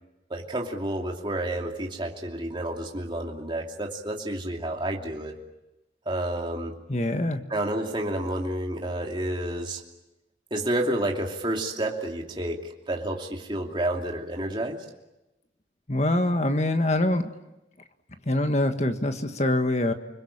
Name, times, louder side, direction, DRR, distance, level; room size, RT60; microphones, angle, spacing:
voice 1, 0.3-5.3 6.1-6.7 7.5-9.8 10.5-14.8, right 1 dB, 25° right, 1 dB, 2.8 m, -30 dB
voice 2, 6.9-7.4 15.9-17.3 18.2-19.9, left 1 dB, 40° left, 7 dB, 1.6 m, -24 dB
29.5 x 21.0 x 8.8 m, 0.97 s
head